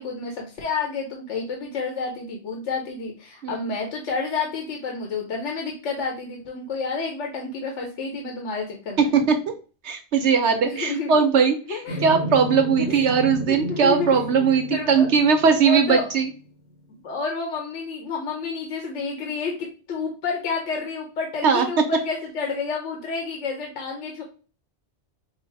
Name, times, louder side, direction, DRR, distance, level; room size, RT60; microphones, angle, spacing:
voice 1, 0.0-9.1 10.6-11.1 11.7-12.0 12.9-13.1 13.5-14.4 14.7-15.1 15.4-16.1 17.0-24.2, left 4 dB, 80° left, 1 dB, 1.1 m, -30 dB
voice 2, 9.8-16.3 21.4-21.7, right 6 dB, 75° right, 5 dB, 0.9 m, -20 dB
sound 1, 11.9-16.4, equal, 55° left, 0.9 m, -33 dB
4.8 x 2.0 x 4.5 m, 0.36 s
omnidirectional pair, 1.2 m